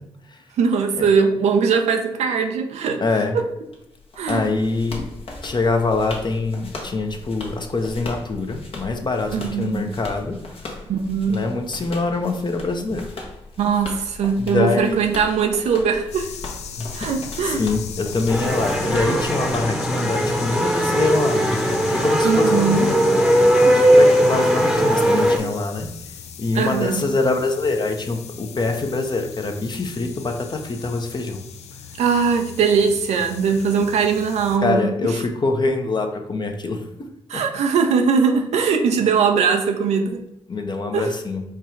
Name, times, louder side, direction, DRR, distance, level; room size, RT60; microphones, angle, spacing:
voice 1, 0.6-3.0 4.2-4.5 9.3-9.9 10.9-11.4 13.6-16.3 16.9-17.6 22.2-22.9 26.5-27.1 32.0-34.9 37.3-40.2 40.9-41.1, right 6 dB, 85° right, 5 dB, 0.5 m, -20 dB
voice 2, 3.0-3.4 4.3-5.1 5.4-10.4 11.3-13.1 14.4-15.0 16.8-25.9 26.4-31.4 34.6-37.1 37.3-37.4 40.5-41.4, left 3 dB, 40° left, 5 dB, 0.8 m, -24 dB
sound 1, 3.7-20.3, left 3 dB, 60° left, 1.1 m, -38 dB
sound 2, 16.1-34.6, left 7 dB, 80° left, 0.4 m, -37 dB
sound 3, 18.3-25.4, equal, 5° right, 0.9 m, -18 dB
4.7 x 2.4 x 4.4 m, 0.86 s
supercardioid pair, 50°, 11 cm